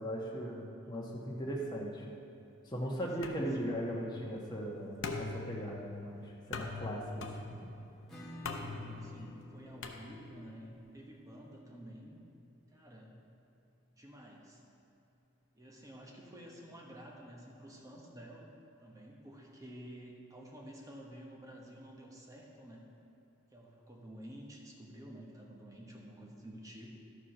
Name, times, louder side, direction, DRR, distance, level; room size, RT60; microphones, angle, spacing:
voice 1, 0.0-2.1 2.6-7.2, equal, 20° left, -3 dB, 1.3 m, -38 dB
voice 2, 0.8-1.2 3.2-3.7 8.5-12.2 12.7-13.2 14.0-14.6 15.5-18.5 18.8-22.8 23.5-27.0, equal, 15° right, -1 dB, 1.1 m, -51 dB
sound 1, 3.2-10.6, left 3 dB, 60° left, 0.8 m, -44 dB
Acoustic guitar / Strum, 8.1-13.5, left 1 dB, ahead, 1.3 m, -53 dB
13.0 x 4.8 x 5.9 m, 2.7 s
head